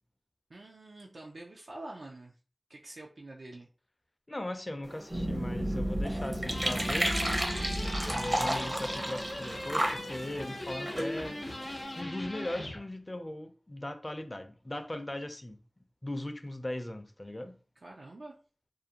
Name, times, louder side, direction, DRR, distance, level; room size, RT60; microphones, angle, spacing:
voice 1, 0.5-2.3 2.7-3.7 17.8-18.4, right 2 dB, 85° right, 0.3 m, -46 dB
voice 2, 4.3-7.2 8.1-11.4 12.0-15.6 16.0-17.6, left 1 dB, 35° left, 0.4 m, -38 dB
sound 1, 4.8-12.0, right 1 dB, 45° right, 0.6 m, -34 dB
sound 2, 5.1-11.8, equal, 70° right, 1.1 m, -36 dB
sound 3, 6.5-12.8, left 1 dB, 80° left, 0.6 m, -40 dB
2.5 x 2.1 x 2.7 m
wide cardioid pair, 45°, 0 cm